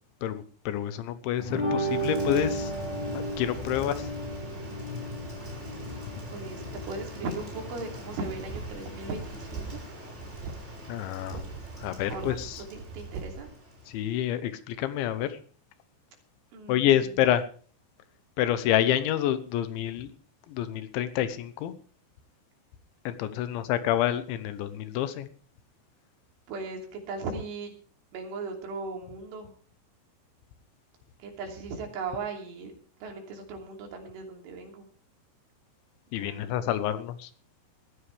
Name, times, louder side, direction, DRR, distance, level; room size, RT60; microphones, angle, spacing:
voice 1, 0.2-2.7 3.1-4.1 10.9-11.5 11.8-12.6 13.9-15.4 16.7-17.4 18.4-20.1 20.5-21.7 23.1-25.3 36.1-37.3, left 11 dB, 80° left, 12 dB, 3.3 m, -28 dB
sound 1, 1.4-9.1, right 1 dB, 40° left, 5.0 m, -34 dB
Rain, 1.8-14.2, left 1 dB, 15° right, 5.0 m, -42 dB
voice 2, 5.1-5.7 6.3-9.8 12.1-12.4 12.7-13.5 16.5-17.1 23.1-23.7 26.5-26.8 27.1-27.7 28.1-29.5 31.2-32.7 33.0-34.9 36.1-36.8, right 3 dB, 85° right, 2 dB, 5.5 m, -38 dB
sound 2, 8.2-9.9 10.2-10.6 11.2-13.4, right 5 dB, 65° right, 2.4 m, -41 dB
20.0 x 14.0 x 3.4 m, 0.43 s
omnidirectional pair, 5.4 m